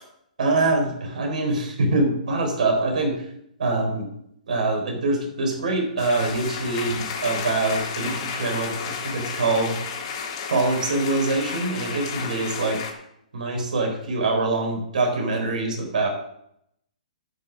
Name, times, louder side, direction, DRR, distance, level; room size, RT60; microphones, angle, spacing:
voice 1, 0.4-3.2 3.6-4.1 4.5-9.8 10.5-12.8 13.3-16.1, right 2 dB, 70° right, 3 dB, 3.9 m, -24 dB
sound 1, 6.0-12.9, left 6 dB, 35° left, 1.9 m, -32 dB
11.0 x 5.9 x 7.3 m, 0.75 s
hypercardioid pair, 165°, 4 cm